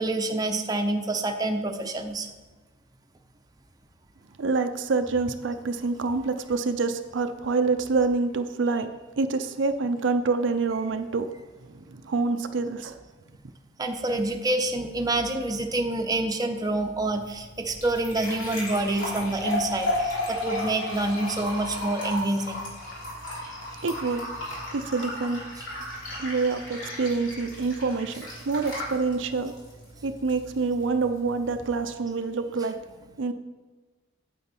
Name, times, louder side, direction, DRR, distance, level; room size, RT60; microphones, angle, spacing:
voice 1, 0.0-2.3 13.8-22.6, right 2 dB, 20° right, 4 dB, 0.7 m, -27 dB
voice 2, 4.4-8.9 9.2-11.3 11.9-13.0 23.8-24.2 24.7-25.4 26.2-29.5 30.0-32.8 33.2-33.3, right 4 dB, 70° right, 8 dB, 0.5 m, -26 dB
sound 1, 16.9-31.9, left 1 dB, 90° left, 3.1 m, -35 dB
8.6 x 7.8 x 4.4 m, 1.3 s
head